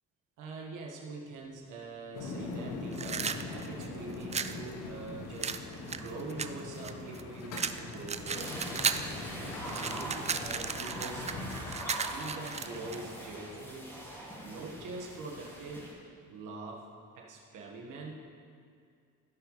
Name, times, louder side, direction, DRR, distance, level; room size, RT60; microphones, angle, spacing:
voice 1, 0.4-5.6 5.9-8.7 9.4-11.3 12.0-14.0 14.4-15.9 16.3-18.2, right 3 dB, 85° right, -1 dB, 1.5 m, -44 dB
sound 1, 2.1-11.8, left 3 dB, 85° left, 1.2 m, -42 dB
sound 2, 2.9-4.6 5.4-7.2 7.5-9.1 9.4-13.0, right 6 dB, 25° right, 0.3 m, -35 dB
sound 3, 8.3-15.9, equal, 10° left, 2.0 m, -42 dB
16.0 x 5.6 x 3.2 m, 2.3 s
cardioid pair, 90°, 30 cm